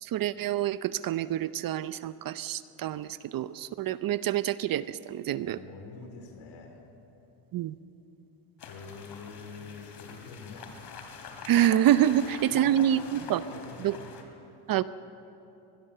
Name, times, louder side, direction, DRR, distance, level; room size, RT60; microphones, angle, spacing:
voice 1, 0.0-5.6 7.5-7.8 11.4-13.4 13.8-14.0 14.7-14.8, right 11 dB, 45° right, 15 dB, 0.6 m, -27 dB
voice 2, 5.4-6.8 8.6-10.8 12.5-14.0, left 4 dB, 70° left, 4 dB, 4.3 m, -46 dB
sound 1, 8.6-14.2, left 5 dB, 50° left, 3.3 m, -45 dB
23.5 x 19.5 x 6.7 m, 2.9 s
cardioid pair, 110°, 50 cm